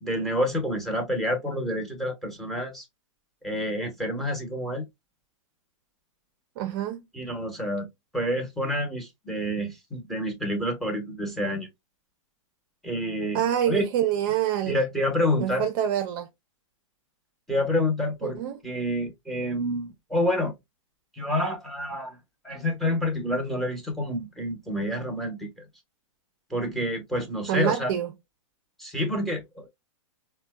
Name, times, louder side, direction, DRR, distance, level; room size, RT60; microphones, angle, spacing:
voice 1, 0.0-2.8 3.4-4.9 7.1-7.9 8.1-11.7 12.8-13.8 14.7-15.6 17.5-20.5 21.1-22.2 22.4-25.5 26.5-27.9 28.8-29.7, left 1 dB, ahead, 0.9 m, -28 dB
voice 2, 6.6-7.1 13.3-14.8 15.4-16.3 18.2-18.6 27.5-28.1, right 10 dB, 45° right, 0.5 m, -26 dB
4.1 x 2.2 x 2.2 m
hypercardioid pair, 140°, 17 cm